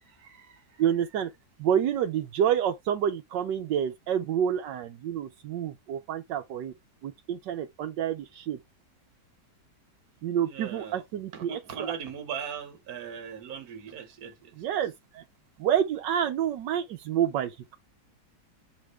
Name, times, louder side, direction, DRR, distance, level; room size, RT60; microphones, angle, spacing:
voice 1, 0.0-0.8 10.4-11.0 11.3-14.5, right 7 dB, 60° right, 1.7 m, -39 dB
voice 2, 0.8-1.3 1.6-6.7 7.0-8.6 10.2-11.5 11.8-11.9 14.6-15.2 15.6-17.7, right 9 dB, 85° right, 1.4 m, -28 dB
8.3 x 3.6 x 3.2 m
omnidirectional pair, 1.9 m